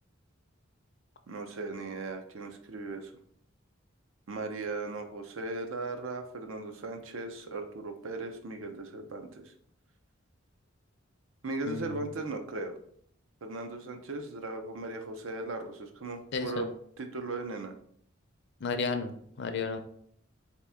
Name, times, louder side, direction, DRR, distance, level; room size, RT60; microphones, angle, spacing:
voice 1, 1.3-3.1 4.3-9.5 11.4-12.7 13.4-16.7 17.0-17.7, right 3 dB, 85° right, 6 dB, 0.6 m, -37 dB
voice 2, 11.6-12.1 16.3-16.6 18.6-19.8, left 4 dB, 60° left, 7 dB, 0.5 m, -33 dB
4.1 x 2.9 x 3.5 m, 0.66 s
head